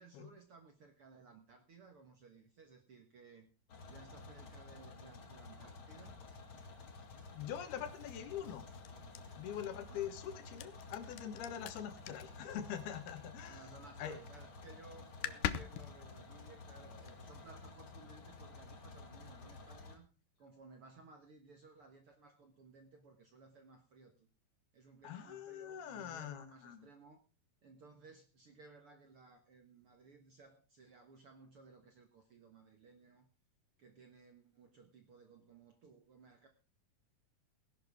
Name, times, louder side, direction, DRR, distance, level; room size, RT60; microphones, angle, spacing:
voice 1, 0.0-3.5 3.9-6.2 9.9-10.2 13.4-20.1 20.4-24.3 24.7-27.2 27.6-33.3 33.8-36.5, right 4 dB, 55° right, 5 dB, 1.6 m, -59 dB
sound 1, 3.7-20.0, left 3 dB, 40° left, 2.2 m, -52 dB
sound 2, 6.1-13.7 14.0-14.5 14.8-14.9 15.0-17.4, left 12 dB, 75° left, 2.2 m, -45 dB
voice 2, 7.3-8.6 9.4-13.6 14.0-14.2 25.0-26.9, left 9 dB, 90° left, 9 dB, 3.4 m, -44 dB
18.5 x 11.0 x 3.6 m, 0.31 s
omnidirectional pair, 4.3 m